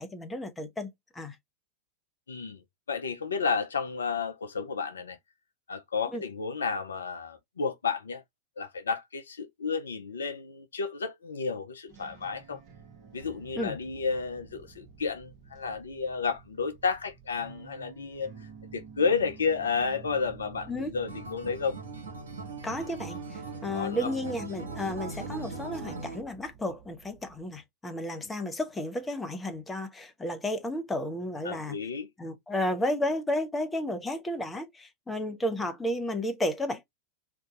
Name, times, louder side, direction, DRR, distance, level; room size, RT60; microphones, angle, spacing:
voice 1, 0.0-1.4 6.1-6.2 13.6-13.8 20.7-20.9 22.6-31.8 32.2-36.8, left 1 dB, 10° left, 0.7 m, -32 dB
voice 2, 2.3-2.6 2.9-5.2 5.7-8.2 8.6-12.6 13.1-18.3 18.7-21.8 23.7-24.1 31.4-32.1, left 5 dB, 70° left, 0.4 m, -31 dB
sound 1, 11.9-27.5, right 7 dB, 40° right, 0.7 m, -50 dB
Acoustic guitar, 21.1-26.2, right 3 dB, 70° right, 1.0 m, -40 dB
2.6 x 2.2 x 3.7 m
figure-of-eight pair, 90°, 0 cm